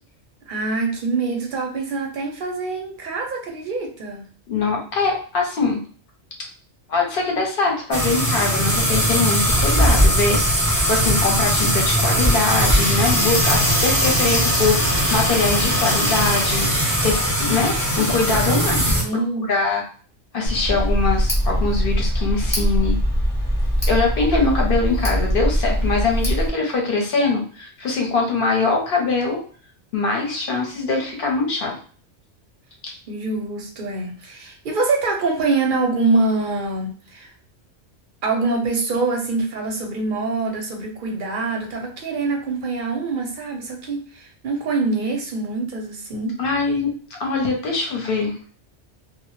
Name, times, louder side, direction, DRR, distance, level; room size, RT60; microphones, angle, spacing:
voice 1, 0.5-4.3 19.0-19.6 33.1-37.3 38.2-46.4, right 3 dB, 55° right, 1 dB, 0.7 m, -24 dB
voice 2, 4.5-5.8 6.9-10.6 10.9-16.7 17.0-19.0 19.5-19.8 20.3-23.0 23.9-29.4 29.9-31.7 32.8-32.9 46.4-48.4, left 4 dB, 60° left, 1 dB, 0.7 m, -22 dB
sound 1, 7.9-19.0, equal, 15° right, 0.5 m, -19 dB
Tick, 20.4-26.5, equal, 30° left, 0.8 m, -21 dB
2.1 x 2.0 x 2.9 m, 0.42 s
omnidirectional pair, 1.2 m